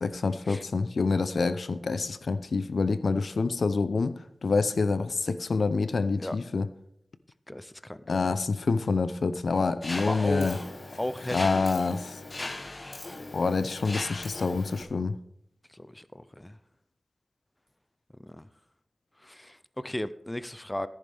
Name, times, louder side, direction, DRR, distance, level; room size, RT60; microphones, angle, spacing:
voice 1, 0.0-6.7 8.1-10.6 11.3-12.2 13.3-15.2, left 4 dB, 75° left, 13 dB, 0.6 m, -27 dB
voice 2, 7.5-8.3 9.9-10.6 11.0-11.7 15.7-16.6 18.2-18.5 19.2-20.9, left 1 dB, 15° left, 14 dB, 0.5 m, -35 dB
Mechanisms, 9.8-14.8, left 2 dB, 40° left, 1.0 m, -39 dB
13.5 x 11.0 x 3.5 m, 0.73 s
wide cardioid pair, 90°, 0 cm